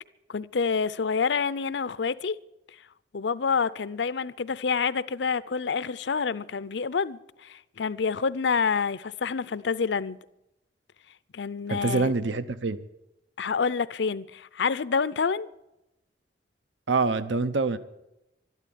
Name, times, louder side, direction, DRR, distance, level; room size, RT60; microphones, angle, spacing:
voice 1, 0.3-2.3 3.1-10.2 11.3-12.1 13.4-15.5, left 5 dB, 70° left, 0.5 m, -28 dB
voice 2, 11.7-12.8 16.9-17.8, right 3 dB, 80° right, 0.7 m, -25 dB
12.5 x 12.5 x 9.4 m
head